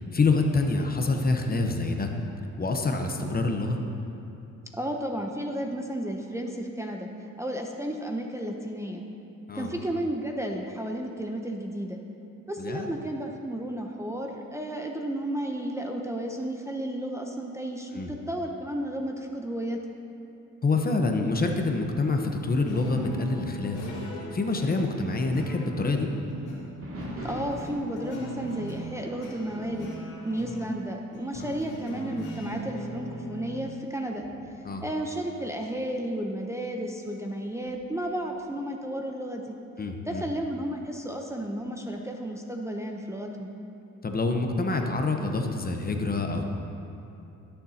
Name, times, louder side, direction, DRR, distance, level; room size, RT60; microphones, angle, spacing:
voice 1, 0.1-2.1 2.6-3.8 9.5-9.7 12.6-12.9 17.9-18.1 20.6-23.9 24.3-26.1 34.6-34.8 39.8-40.2 44.0-46.5, left 3 dB, 30° left, 3 dB, 0.9 m, -26 dB
voice 2, 4.7-7.1 7.4-9.0 9.6-12.0 12.5-19.8 27.2-29.9 30.2-34.2 34.8-39.5 40.1-43.5, right 1 dB, 10° right, 1 dB, 0.7 m, -33 dB
sound 1, 22.5-33.6, equal, 90° left, 2.5 m, -39 dB
sound 2, 26.8-30.9 31.3-31.6 32.2-32.3 33.1-35.8 37.6-38.1, right 1 dB, 45° right, 2.2 m, -43 dB
19.0 x 6.9 x 2.8 m, 2.9 s
cardioid pair, 90°, 30 cm